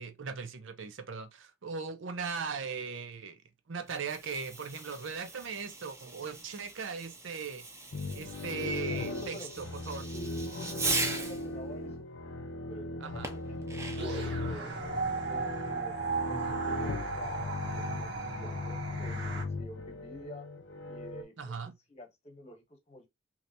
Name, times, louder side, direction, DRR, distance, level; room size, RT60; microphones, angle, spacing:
voice 1, 0.0-3.4 3.7-7.7 8.1-10.0 13.0-13.3 21.4-21.7, right 5 dB, 75° right, 0.6 m, -38 dB
Fireworks, 3.8-11.5 13.2-14.2, right 3 dB, 15° right, 0.6 m, -39 dB
sound 1, 7.9-21.2, left 2 dB, 70° left, 0.7 m, -38 dB
voice 2, 8.9-9.6 9.9-12.1 12.7-15.9 16.3-20.5 20.8-21.6 21.9-23.1, equal, 35° left, 1.0 m, -48 dB
sound 2, 14.0-19.4, right 4 dB, 60° right, 1.0 m, -36 dB
3.3 x 2.8 x 2.7 m
head